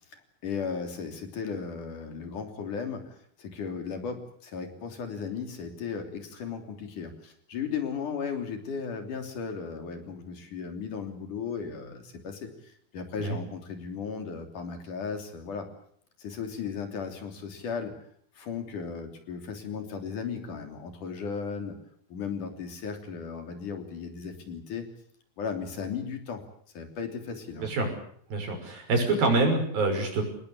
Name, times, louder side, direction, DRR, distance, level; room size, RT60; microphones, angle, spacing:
voice 1, 0.1-15.7 16.2-18.0 18.4-21.8 22.1-24.9 25.4-26.4 26.7-27.7, left 6 dB, 60° left, 6 dB, 4.6 m, -36 dB
voice 2, 27.6-27.9 28.3-30.2, right 3 dB, 80° right, 4 dB, 7.7 m, -26 dB
26.0 x 20.0 x 8.6 m, 0.64 s
omnidirectional pair, 4.1 m